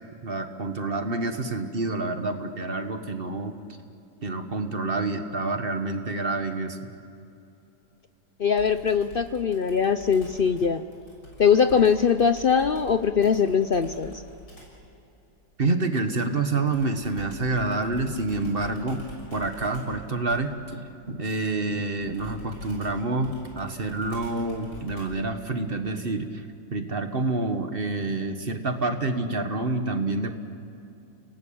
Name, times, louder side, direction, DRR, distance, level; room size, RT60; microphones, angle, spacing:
voice 1, 0.2-3.6 4.2-6.9 15.6-19.0 19.3-26.4 26.7-30.4, right 3 dB, 35° right, 7 dB, 1.6 m, -28 dB
voice 2, 8.4-10.9 11.4-14.2, left 6 dB, 60° left, 10 dB, 0.5 m, -21 dB
Computer keyboard, 8.6-14.8 16.7-25.3, right 1 dB, 90° left, 7.0 m, -45 dB
29.5 x 19.5 x 8.8 m, 2.7 s
omnidirectional pair, 1.8 m